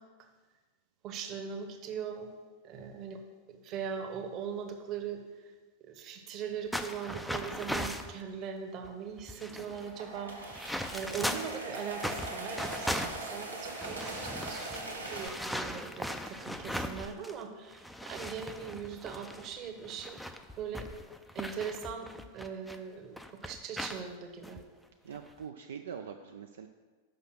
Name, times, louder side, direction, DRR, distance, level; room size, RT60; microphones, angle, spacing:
voice 1, 1.0-2.3 2.6-3.2 3.6-5.2 5.8-10.4 10.9-20.2 20.6-20.9 21.3-22.1 22.3-24.6, right 7 dB, 35° right, 5 dB, 1.0 m, -40 dB
sound 1, 6.7-8.1 8.8-8.9 9.2-11.6 12.0-17.4 17.7-22.8 23.2-24.0 24.4-24.6 25.1-25.4, equal, ahead, 0.4 m, -39 dB
sound 2, 9.7-15.3, right 2 dB, 85° right, 1.5 m, -41 dB
voice 2, 25.0-26.7, right 7 dB, 65° right, 5 dB, 0.4 m, -44 dB
6.4 x 5.6 x 6.0 m, 1.4 s
figure-of-eight pair, 90°, 0 cm